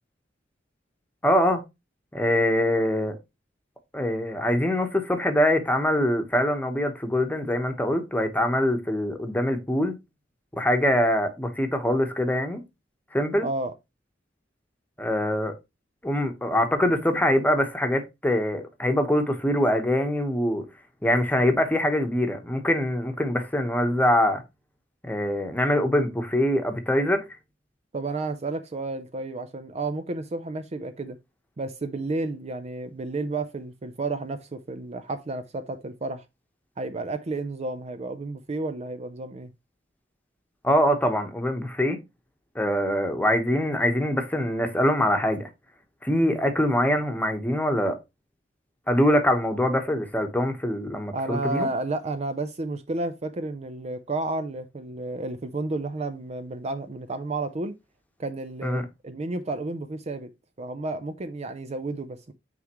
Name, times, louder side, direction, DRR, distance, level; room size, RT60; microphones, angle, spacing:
voice 1, 1.2-1.6 2.1-3.2 3.9-9.9 10.6-12.6 13.1-13.5 15.0-15.5 16.0-20.6 21.0-24.4 25.0-27.2 40.6-42.0 42.5-45.5 46.0-48.0 48.9-51.7 58.6-58.9, left 1 dB, 10° left, 1.1 m, -23 dB
voice 2, 13.4-13.7 27.9-31.2 31.6-36.2 36.8-39.5 51.1-57.7 58.2-60.3 60.6-62.3, right 2 dB, 35° right, 0.5 m, -31 dB
9.4 x 3.6 x 3.0 m
head